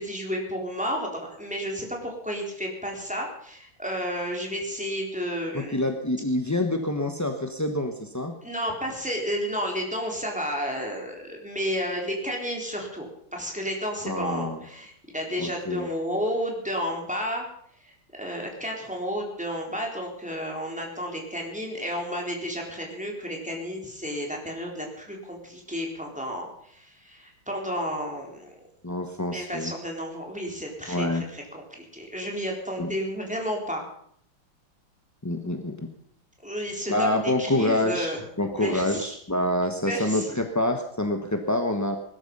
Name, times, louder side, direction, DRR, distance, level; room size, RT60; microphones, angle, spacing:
voice 1, 0.0-5.8 8.4-17.4 17.8-17.9 18.2-28.6 29.3-33.8 36.4-38.2 38.6-39.1 39.8-40.4, equal, 5° right, 0 dB, 3.9 m, -32 dB
voice 2, 5.5-8.3 14.0-14.6 15.4-15.9 28.8-29.7 30.9-31.2 32.8-33.0 35.2-35.9 36.9-42.0, left 1 dB, 15° left, 5 dB, 0.6 m, -27 dB
20.0 x 12.5 x 5.5 m, 0.65 s
omnidirectional pair, 2.3 m